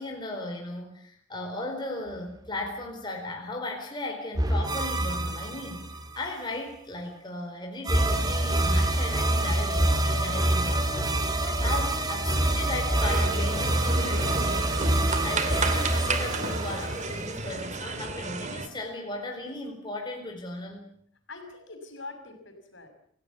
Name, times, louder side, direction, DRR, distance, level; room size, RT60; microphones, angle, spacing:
voice 1, 0.0-5.9 6.1-20.9, left 2 dB, 20° left, 1 dB, 4.6 m, -36 dB
sound 1, 4.3-6.2 7.8-17.6, right 1 dB, 20° right, 2.7 m, -26 dB
sound 2, 13.0-18.7, right 3 dB, 35° right, 2.4 m, -32 dB
voice 2, 21.3-22.9, left 3 dB, 60° left, 6 dB, 6.1 m, -44 dB
28.5 x 17.0 x 8.4 m, 0.65 s
head